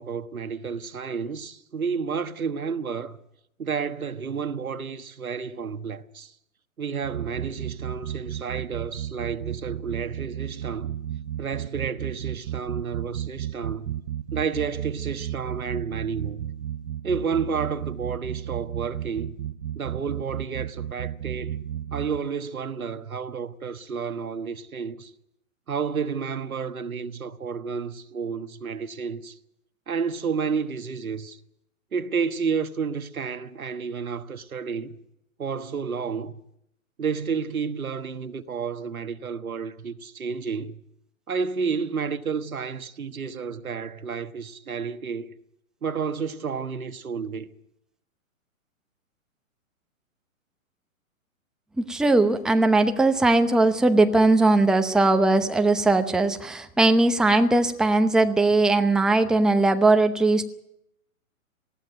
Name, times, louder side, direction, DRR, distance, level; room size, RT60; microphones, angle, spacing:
voice 1, 0.0-3.2 3.6-6.3 6.8-11.0 11.4-13.9 14.3-16.5 17.0-19.3 19.7-21.6 21.9-25.1 25.7-29.4 29.9-31.4 31.9-35.0 35.4-36.3 37.0-40.8 41.3-45.3 45.8-47.5, right 6 dB, 85° right, 1.4 m, -31 dB
sound 1, 7.0-22.2, right 10 dB, 60° right, 0.9 m, -33 dB
voice 2, 51.8-60.4, right 2 dB, ahead, 0.8 m, -20 dB
19.5 x 15.5 x 9.3 m
hypercardioid pair, 120°, 41 cm